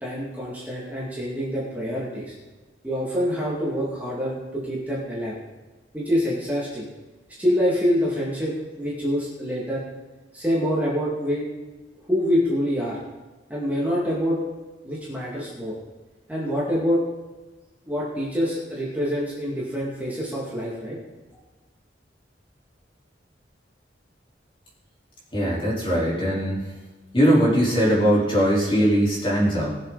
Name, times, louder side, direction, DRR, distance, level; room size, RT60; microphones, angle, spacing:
voice 1, 0.0-2.3 2.8-5.4 5.9-6.9 7.4-9.8 10.3-11.5 12.1-13.0 13.5-14.4 14.8-15.7 16.3-17.0 17.9-21.0, equal, 10° right, -6 dB, 2.4 m, -26 dB
voice 2, 25.3-26.7 27.1-29.7, equal, 30° left, -6 dB, 4.2 m, -20 dB
19.5 x 7.4 x 4.2 m, 1.2 s
head